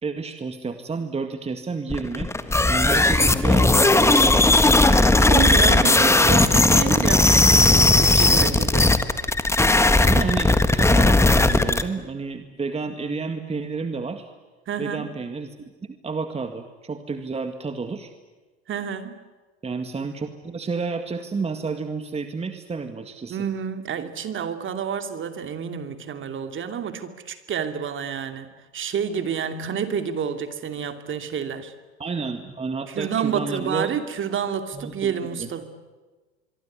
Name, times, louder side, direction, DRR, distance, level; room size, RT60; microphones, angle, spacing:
voice 1, 0.0-4.9 5.2-6.3 8.2-8.6 10.0-14.3 14.8-15.6 15.9-18.1 19.6-23.4 32.0-33.9 34.7-35.5, right 4 dB, 20° right, 7 dB, 2.0 m, -31 dB
sound 1, 1.9-11.8, left 2 dB, 10° left, 1.7 m, -17 dB
voice 2, 5.3-9.0 14.7-15.1 18.7-19.1 23.3-31.7 32.9-35.6, right 7 dB, 35° right, 8 dB, 2.8 m, -29 dB
25.0 x 23.5 x 9.8 m, 1.3 s
hypercardioid pair, 85°, 33 cm